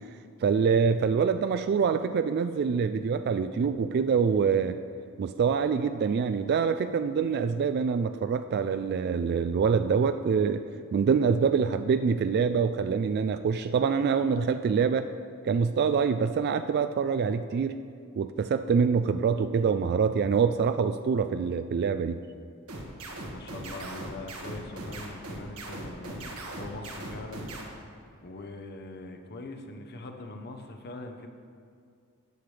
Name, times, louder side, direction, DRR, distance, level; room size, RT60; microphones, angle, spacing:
voice 1, 0.4-4.8 5.2-10.6 10.9-15.1 15.4-17.8 18.2-22.2, right 6 dB, 50° right, 10 dB, 0.3 m, -25 dB
sound 1, 22.7-27.6, right 1 dB, 80° right, 1.6 m, -39 dB
voice 2, 23.3-27.5 28.2-31.3, left 2 dB, 50° left, 5 dB, 0.8 m, -42 dB
13.5 x 8.6 x 3.3 m, 2.3 s
head